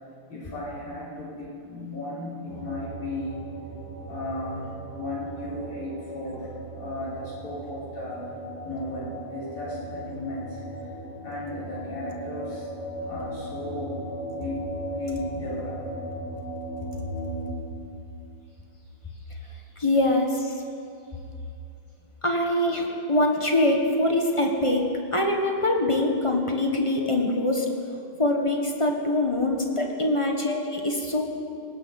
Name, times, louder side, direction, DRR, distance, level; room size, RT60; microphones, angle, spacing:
voice 1, 0.3-3.4 4.1-10.9 11.2-12.7 13.0-16.0 19.0-19.8 21.1-21.2, left 1 dB, 80° left, -10 dB, 6.4 m, -36 dB
sound 1, 2.5-17.5, right 1 dB, 35° left, 3.4 m, -37 dB
voice 2, 19.8-20.6 22.2-27.7 28.2-31.2, left 1 dB, 20° left, 1 dB, 1.0 m, -24 dB
19.5 x 17.0 x 4.2 m, 2.6 s
omnidirectional pair, 2.4 m